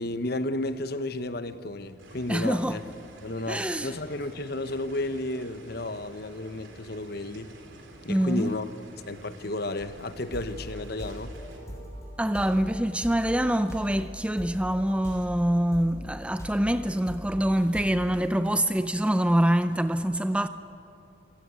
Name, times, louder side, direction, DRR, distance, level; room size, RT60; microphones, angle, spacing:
voice 1, 0.0-2.8 3.2-7.5 8.0-8.7 9.1-11.4, left 2 dB, 50° left, 1.0 m, -32 dB
sound 1, 2.0-11.6, right 2 dB, 70° right, 3.5 m, -50 dB
voice 2, 2.3-2.8 3.5-3.9 8.1-8.5 12.2-20.5, right 1 dB, 5° right, 0.4 m, -25 dB
sound 2, 9.9-15.4 15.7-18.1, equal, 15° left, 6.3 m, -41 dB
27.0 x 17.0 x 8.2 m
head